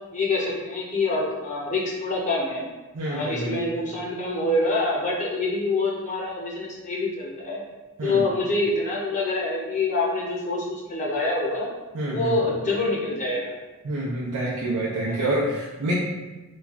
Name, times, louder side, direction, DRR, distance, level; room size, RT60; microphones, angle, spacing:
voice 1, 0.1-2.6 3.1-7.6 8.0-11.7 12.0-13.5 15.1-15.3, left 2 dB, 35° left, -4 dB, 0.6 m, -26 dB
voice 2, 2.9-3.6 8.0-8.2 11.9-12.3 13.8-15.9, right 1 dB, 85° right, -6 dB, 0.5 m, -27 dB
3.1 x 2.3 x 3.5 m, 1.1 s
head